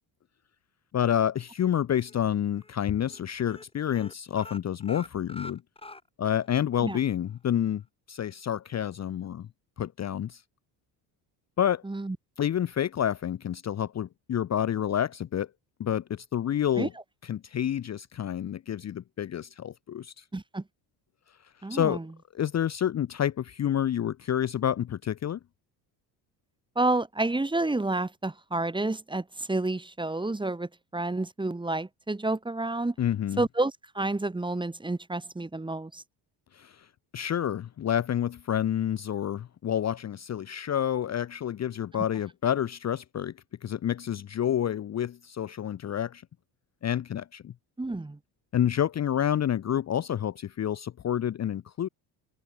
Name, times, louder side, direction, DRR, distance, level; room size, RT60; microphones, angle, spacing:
voice 1, 0.9-5.6 6.2-7.8 8.1-9.5 9.8-10.4 11.6-11.8 12.4-15.5 15.8-16.9 17.2-20.2 21.7-22.0 22.3-25.4 33.0-33.4 36.5-36.9 37.1-43.3 43.6-46.2 46.8-47.5 48.5-51.9, left 10 dB, 35° left, 0.8 m, -28 dB
sound 1, 1.6-2.2 2.5-2.7 3.0-3.2 3.4-6.5 6.8-6.9 7.3-7.4, left 2 dB, 10° left, 3.9 m, -46 dB
voice 2, 11.8-12.2 16.8-16.9 20.3-20.6 21.6-22.0 26.7-32.9 33.4-36.0 47.8-48.2, right 2 dB, 10° right, 1.4 m, -29 dB
supercardioid pair, 80°, 46 cm